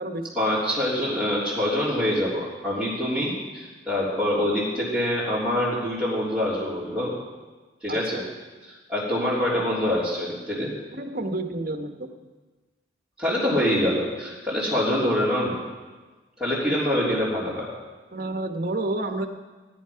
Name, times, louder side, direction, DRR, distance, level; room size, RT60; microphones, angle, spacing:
voice 1, 0.3-7.1 7.8-8.2 8.6-10.7 13.2-15.6 16.4-17.7, left 1 dB, ahead, -13 dB, 3.7 m, -25 dB
voice 2, 7.9-8.3 10.9-12.1 16.6-16.7 18.1-19.3, right 2 dB, 55° right, 6 dB, 1.2 m, -30 dB
17.5 x 11.5 x 5.8 m, 1.3 s
head